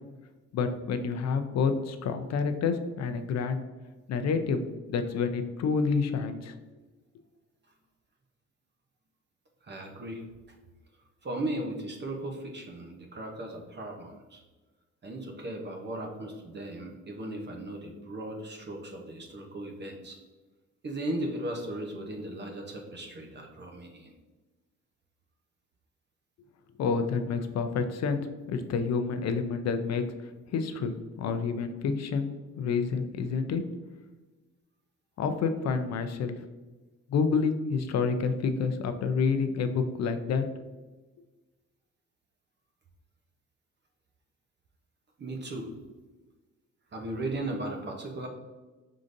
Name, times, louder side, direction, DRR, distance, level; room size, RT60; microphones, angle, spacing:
voice 1, 0.5-3.6 4.1-4.6 4.9-6.5 26.8-28.2 28.5-30.0 30.5-33.6 35.2-36.4 37.1-40.4, left 5 dB, 60° left, 8 dB, 0.5 m, -28 dB
voice 2, 9.6-10.2 11.2-14.4 15.0-20.2 20.8-24.1 45.2-45.7 46.9-48.3, right 1 dB, 35° right, 2 dB, 0.8 m, -37 dB
4.9 x 3.8 x 2.6 m, 1.2 s
cardioid pair, 90°, 30 cm